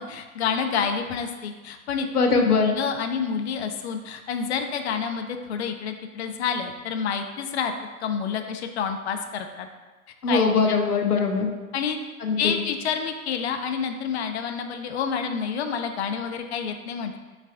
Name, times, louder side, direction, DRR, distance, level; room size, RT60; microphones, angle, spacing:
voice 1, 0.0-7.7 8.0-9.7 10.3-10.4 11.7-12.0 12.4-17.2, left 6 dB, 50° left, 6 dB, 0.5 m, -28 dB
voice 2, 2.1-2.7 10.2-11.5 12.2-12.6, left 4 dB, 90° left, 3 dB, 0.7 m, -21 dB
5.6 x 2.4 x 3.4 m, 1.2 s
figure-of-eight pair, 110°, 44 cm